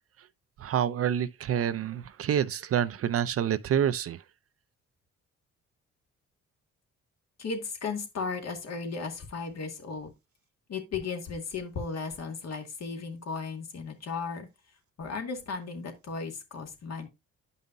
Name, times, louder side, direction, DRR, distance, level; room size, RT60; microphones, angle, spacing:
voice 1, 0.6-4.2, right 9 dB, 50° right, 0.5 m, -27 dB
voice 2, 7.4-10.1 10.7-14.5 15.0-17.1, left 4 dB, 60° left, 2.0 m, -35 dB
9.2 x 5.4 x 2.6 m
cardioid pair, 90°, 30 cm